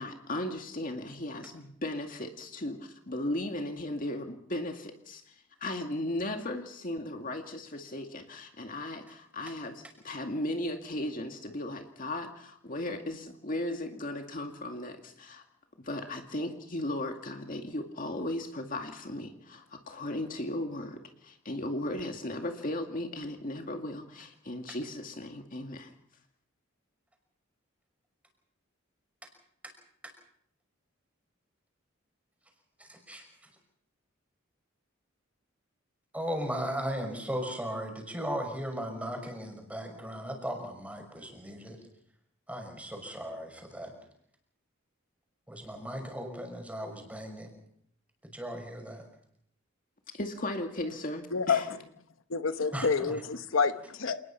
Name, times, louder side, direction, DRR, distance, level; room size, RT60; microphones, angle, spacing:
voice 1, 0.0-15.4 15.8-25.9 50.1-51.7, left 1 dB, 45° left, 4 dB, 2.2 m, -36 dB
voice 2, 32.8-33.2 36.1-41.8 42.5-43.9 45.5-47.5 48.3-49.0 52.7-53.2, equal, 5° right, 3 dB, 5.8 m, -37 dB
voice 3, 52.3-54.2, left 5 dB, 85° left, 10 dB, 1.0 m, -28 dB
28.5 x 20.0 x 5.8 m, 0.68 s
head